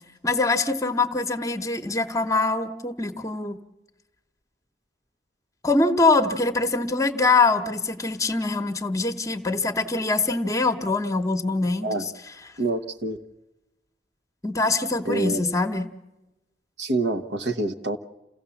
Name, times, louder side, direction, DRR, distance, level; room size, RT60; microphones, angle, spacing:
voice 1, 0.2-3.6 5.6-12.1 14.4-15.9, left 3 dB, 20° left, 7 dB, 1.0 m, -23 dB
voice 2, 12.6-13.2 15.0-15.4 16.8-18.0, right 2 dB, 70° right, 6 dB, 1.1 m, -26 dB
28.5 x 16.0 x 7.1 m, 1.0 s
head